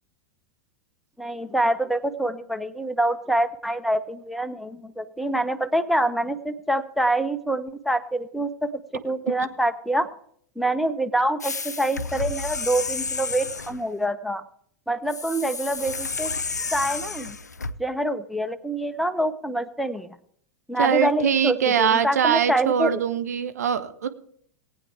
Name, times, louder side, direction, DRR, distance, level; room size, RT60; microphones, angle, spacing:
voice 1, 1.2-10.1 10.6-14.4 14.9-16.3 16.7-17.4 17.8-20.1 20.7-23.0, right 1 dB, ahead, 9 dB, 0.6 m, -26 dB
sound 1, 11.4-13.8 15.1-17.7, left 4 dB, 85° left, 0.5 m, -31 dB
voice 2, 20.8-24.1, right 8 dB, 70° right, 12 dB, 0.8 m, -22 dB
18.5 x 9.0 x 3.4 m, 0.63 s
figure-of-eight pair, 90°, 9 cm